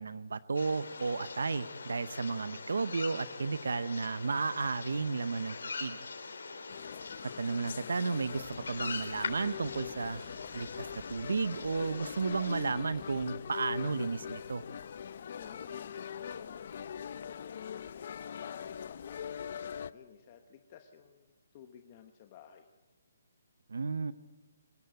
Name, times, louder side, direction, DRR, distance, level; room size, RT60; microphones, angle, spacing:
voice 1, 0.0-6.0 7.4-10.2 10.5-14.6 23.7-24.1, right 4 dB, 85° right, 15 dB, 0.8 m, -33 dB
sound 1, 0.5-12.7, left 4 dB, 90° left, 4.3 m, -43 dB
sound 2, 6.7-19.9, left 8 dB, 45° left, 0.6 m, -42 dB
sound 3, 8.2-13.3, equal, ahead, 3.9 m, -58 dB
voice 2, 15.0-22.7, left 9 dB, 25° left, 6 dB, 1.0 m, -56 dB
25.5 x 15.0 x 9.3 m, 1.2 s
hypercardioid pair, 170°, 0 cm